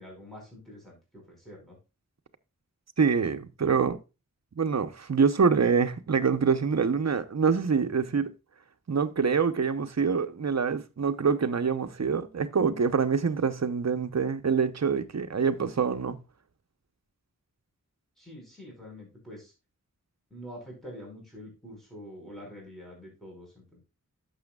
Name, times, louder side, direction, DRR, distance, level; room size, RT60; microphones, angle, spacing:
voice 1, 0.0-1.8 18.2-19.5 20.3-23.8, equal, ahead, 5.2 m, -46 dB
voice 2, 3.0-4.0 4.6-8.3 8.9-16.2, right 5 dB, 55° right, 0.9 m, -25 dB
11.5 x 7.1 x 2.3 m
wide cardioid pair, 95°, 32 cm